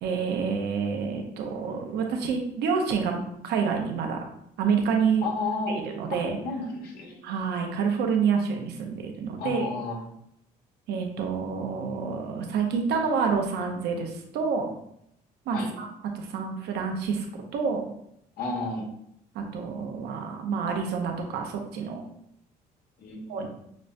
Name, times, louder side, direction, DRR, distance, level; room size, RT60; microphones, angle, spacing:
voice 1, 0.0-4.3 4.6-5.3 5.7-6.4 7.2-9.7 10.9-14.7 15.5-15.9 16.1-17.3 17.5-17.8 19.3-22.0 23.3-23.5, right 5 dB, 75° right, 3 dB, 0.7 m, -28 dB
voice 2, 5.2-5.8 6.1-7.2 9.4-10.0 15.5-15.7 18.4-18.8 23.0-23.5, left 3 dB, 65° left, -1 dB, 1.3 m, -32 dB
6.0 x 2.1 x 2.6 m, 0.73 s
cardioid pair, 110°, 17 cm